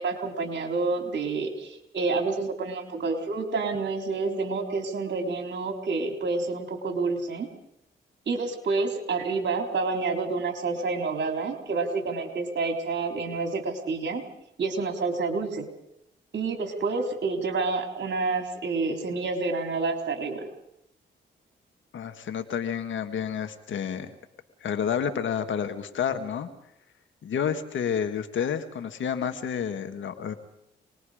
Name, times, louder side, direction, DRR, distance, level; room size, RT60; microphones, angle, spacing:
voice 1, 0.0-7.5 8.3-14.2 14.6-15.7 16.3-20.5, right 3 dB, 60° right, 4 dB, 3.9 m, -28 dB
voice 2, 21.9-24.1 24.6-26.5 27.2-30.3, left 7 dB, 75° left, 9 dB, 1.9 m, -30 dB
26.5 x 20.5 x 5.1 m, 0.81 s
supercardioid pair, 50°, 20 cm